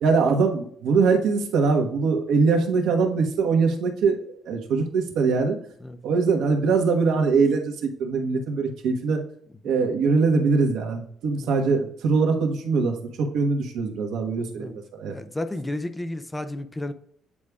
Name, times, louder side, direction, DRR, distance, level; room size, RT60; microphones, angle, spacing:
voice 1, 0.0-5.6 6.0-9.2 9.6-15.1, right 4 dB, 85° right, 1.1 m, -22 dB
voice 2, 15.1-16.9, left 1 dB, 10° left, 0.4 m, -32 dB
8.5 x 4.8 x 2.3 m
cardioid pair, 160°, 0 cm